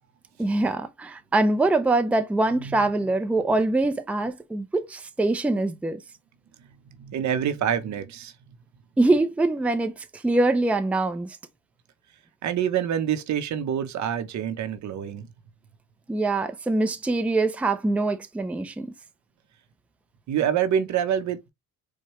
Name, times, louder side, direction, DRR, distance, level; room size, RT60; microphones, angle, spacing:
voice 1, 0.4-6.0 9.0-11.4 16.1-18.9, right 2 dB, 5° right, 0.4 m, -24 dB
voice 2, 7.0-8.3 12.4-15.3 20.3-21.5, right 9 dB, 70° right, 0.8 m, -26 dB
4.7 x 2.2 x 3.0 m
cardioid pair, 90°, 30 cm